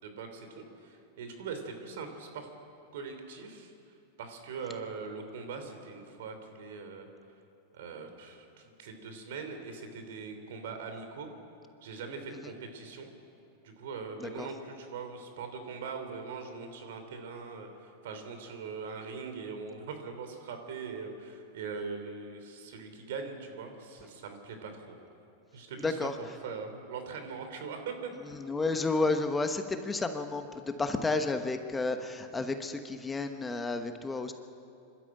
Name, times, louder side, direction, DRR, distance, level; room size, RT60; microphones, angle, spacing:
voice 1, 0.0-2.5 2.9-3.7 4.2-7.1 7.7-11.3 11.8-13.1 13.6-24.8 25.5-28.1, right 5 dB, 75° right, 6 dB, 3.2 m, -41 dB
voice 2, 28.4-34.3, left 3 dB, 15° left, 7 dB, 1.1 m, -31 dB
25.0 x 12.5 x 8.9 m, 2.7 s
supercardioid pair, 125°, 0 cm